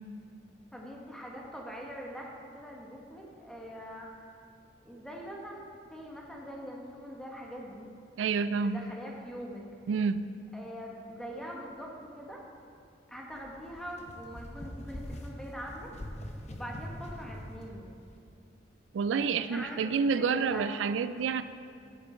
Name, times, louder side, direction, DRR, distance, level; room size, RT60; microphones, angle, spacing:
voice 1, 0.7-4.3 4.8-5.6 5.9-7.9 8.5-9.6 10.5-12.4 13.1-15.9 16.5-17.9 19.3-20.7, equal, 5° left, -2 dB, 1.3 m, -43 dB
voice 2, 8.2-8.9 9.9-10.3 18.9-21.4, right 5 dB, 85° right, 12 dB, 0.3 m, -28 dB
sound 1, 13.3-17.6, equal, 40° left, 0.8 m, -43 dB
11.5 x 6.8 x 4.5 m, 2.5 s
head